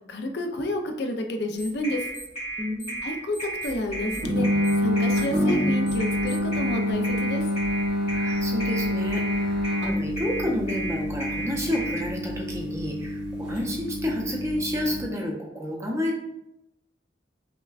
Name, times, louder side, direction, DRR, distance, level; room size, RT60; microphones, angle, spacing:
voice 1, 0.1-2.1 3.0-4.5 4.8-7.5, left 1 dB, 60° left, 4 dB, 0.4 m, -30 dB
sound 1, 1.6-3.0 3.3-6.6, right 2 dB, 80° left, 1.3 m, -43 dB
sound 2, 1.8-12.0, right 2 dB, 30° left, 0.7 m, -33 dB
voice 2, 2.6-3.1 8.1-16.2, left 1 dB, 15° right, -1 dB, 0.5 m, -30 dB
sound 3, 4.2-15.0, left 1 dB, 75° right, 0.7 m, -27 dB
5.6 x 2.1 x 2.4 m, 0.85 s
head